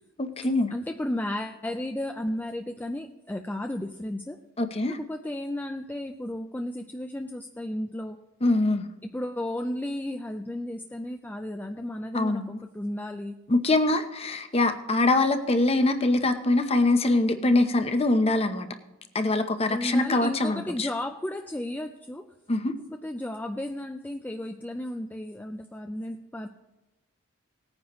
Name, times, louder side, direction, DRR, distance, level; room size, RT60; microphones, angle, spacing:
voice 1, 0.2-0.7 4.6-5.0 8.4-8.8 12.1-12.6 13.5-18.7 19.1-20.9 22.5-22.7, left 2 dB, 30° left, 8 dB, 0.8 m, -23 dB
voice 2, 0.7-4.4 4.9-8.2 9.0-13.3 19.7-22.3 22.9-26.5, left 1 dB, 10° left, 5 dB, 0.4 m, -34 dB
18.5 x 9.5 x 3.0 m, 1.0 s
head